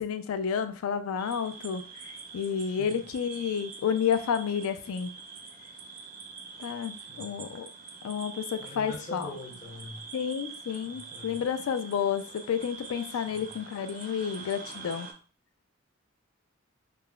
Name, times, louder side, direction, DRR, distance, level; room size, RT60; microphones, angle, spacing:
voice 1, 0.0-5.1 6.6-7.7 8.0-9.3 10.1-15.1, left 7 dB, 80° left, 11 dB, 0.3 m, -31 dB
sound 1, 1.2-15.1, right 5 dB, 40° right, 0.4 m, -45 dB
voice 2, 2.7-3.0 7.1-7.5 8.6-10.0 10.8-11.4 13.1-13.5, left 2 dB, 35° left, 1 dB, 0.6 m, -44 dB
3.6 x 2.0 x 2.2 m, 0.39 s
head